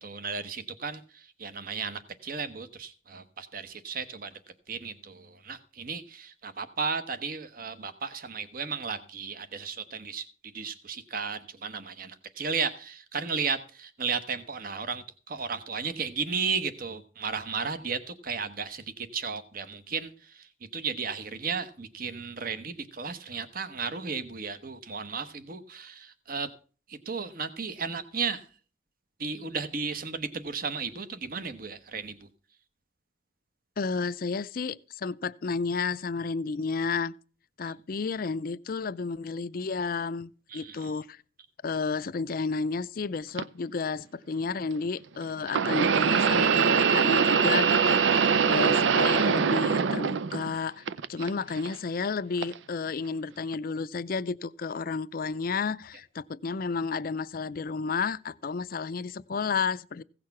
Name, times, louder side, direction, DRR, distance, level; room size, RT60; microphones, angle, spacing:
voice 1, 0.0-4.3 4.7-10.2 10.5-20.4 20.7-26.5 26.9-28.4 29.2-32.3 40.5-40.9, right 5 dB, 50° right, 1.0 m, -34 dB
voice 2, 33.8-37.1 37.6-41.2 41.6-60.0, left 4 dB, 50° left, 0.4 m, -32 dB
sound 1, 43.4-43.5 45.5-50.5 50.9-51.7 52.4-52.6 53.5-53.6, right 6 dB, 90° right, 0.5 m, -23 dB
16.0 x 6.5 x 5.8 m
head